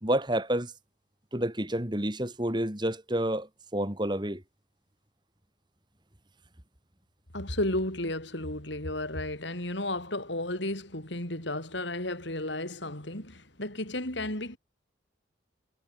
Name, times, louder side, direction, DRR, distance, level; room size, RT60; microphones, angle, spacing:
voice 1, 0.0-0.7 1.3-4.4, right 1 dB, 25° right, 2.5 m, -29 dB
voice 2, 7.3-14.6, left 1 dB, 65° left, 5.9 m, -33 dB
head